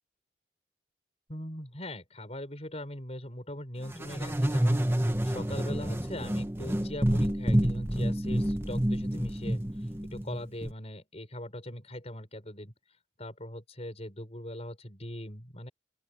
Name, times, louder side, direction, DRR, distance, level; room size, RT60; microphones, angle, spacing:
voice 1, 1.3-12.7 13.2-15.7, left 1 dB, 35° left, 6.5 m, -41 dB
sound 1, 3.9-10.7, equal, 15° right, 1.4 m, -28 dB
open air
head